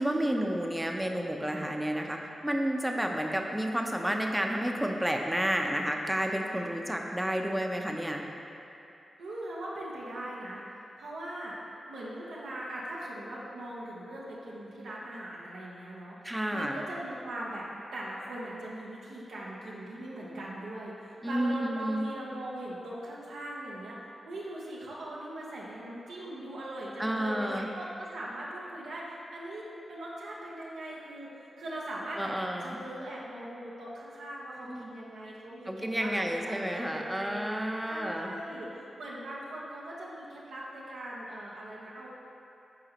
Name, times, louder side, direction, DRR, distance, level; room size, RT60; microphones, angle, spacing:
voice 1, 0.0-8.2 16.2-16.8 21.2-22.1 27.0-27.7 32.2-32.8 34.7-34.9 35.7-38.3, right 1 dB, 10° right, 2 dB, 0.7 m, -31 dB
voice 2, 9.2-10.6 11.0-11.5 11.9-16.2 16.5-17.7 17.9-23.9 24.2-29.6 29.9-31.3 31.6-32.4 32.6-37.4 37.9-38.7 39.0-42.1, right 1 dB, 90° right, -6 dB, 1.0 m, -40 dB
11.0 x 3.8 x 2.9 m, 2.8 s
cardioid pair, 45°, 0 cm